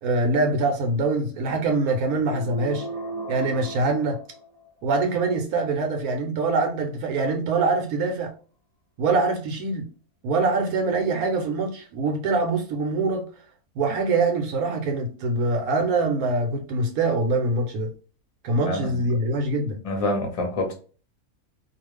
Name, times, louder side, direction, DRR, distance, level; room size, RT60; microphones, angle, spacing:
voice 1, 0.0-2.9 3.3-4.2 4.8-8.3 9.0-9.9 10.2-13.2 13.8-17.9 18.4-19.8, right 3 dB, 80° right, 1.1 m, -24 dB
sound 1, 2.2-4.9, right 2 dB, 40° right, 0.5 m, -36 dB
voice 2, 18.6-19.0 19.8-20.7, left 2 dB, 35° left, 0.6 m, -26 dB
2.5 x 2.3 x 3.2 m
omnidirectional pair, 1.6 m